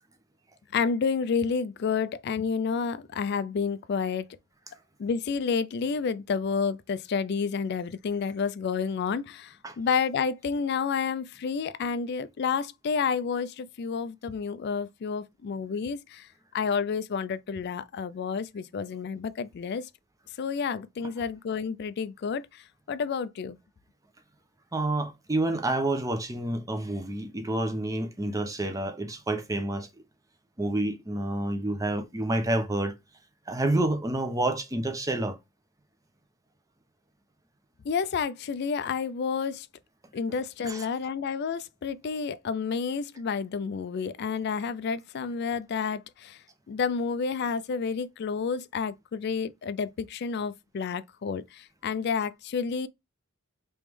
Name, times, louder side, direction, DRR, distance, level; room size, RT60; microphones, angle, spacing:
voice 1, 0.7-4.3 5.0-16.3 16.5-19.9 20.4-22.6 22.9-23.6 37.8-39.7 40.1-46.4 46.7-52.9, left 5 dB, 50° left, 0.3 m, -30 dB
voice 2, 24.7-29.9 30.6-32.9 33.5-35.4 40.6-40.9, right 1 dB, 15° right, 0.6 m, -28 dB
3.3 x 3.0 x 3.4 m
head